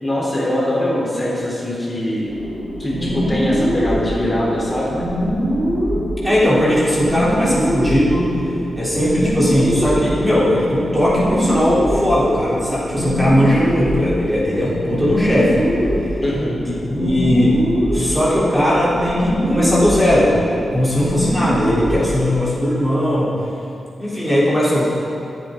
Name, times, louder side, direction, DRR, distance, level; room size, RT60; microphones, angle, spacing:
voice 1, 0.0-2.3 2.8-4.9 16.2-16.5, left 1 dB, 25° left, -5 dB, 3.9 m, -22 dB
sound 1, 2.3-22.2, equal, 35° right, 4.1 m, -22 dB
voice 2, 6.2-8.3 8.8-15.6 16.6-17.6 17.9-20.4 20.7-23.4 24.0-24.9, left 1 dB, 5° right, -8 dB, 3.7 m, -18 dB
26.5 x 9.2 x 3.9 m, 2.7 s
wide cardioid pair, 110°, 0 cm